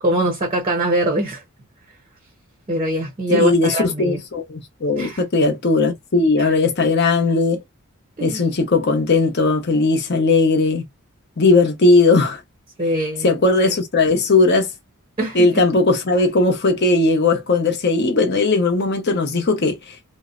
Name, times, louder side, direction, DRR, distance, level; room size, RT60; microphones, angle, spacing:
voice 1, 0.0-1.4 2.7-4.2 4.9-5.2 6.4-6.5 8.2-8.4 12.8-13.3 15.2-15.6, right 1 dB, 25° right, 0.6 m, -22 dB
voice 2, 3.3-7.6 8.2-10.8 11.4-12.4 13.2-14.7 15.3-20.0, left 3 dB, 50° left, 0.7 m, -18 dB
2.5 x 2.1 x 2.3 m
head